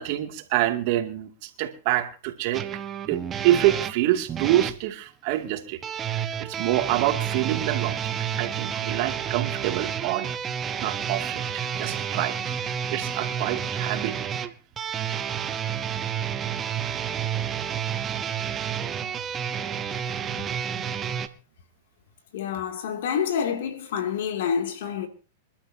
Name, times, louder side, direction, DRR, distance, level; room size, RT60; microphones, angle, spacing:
voice 1, 0.0-2.6 3.1-5.8 6.1-8.1 8.4-10.4 10.8-14.2, right 14 dB, 50° right, 2.4 m, -26 dB
sound 1, 2.5-4.8 5.8-21.3, right 8 dB, 20° right, 1.1 m, -30 dB
voice 2, 22.3-25.1, left 7 dB, 70° left, 2.6 m, -28 dB
26.5 x 12.0 x 2.8 m
hypercardioid pair, 130°, 0 cm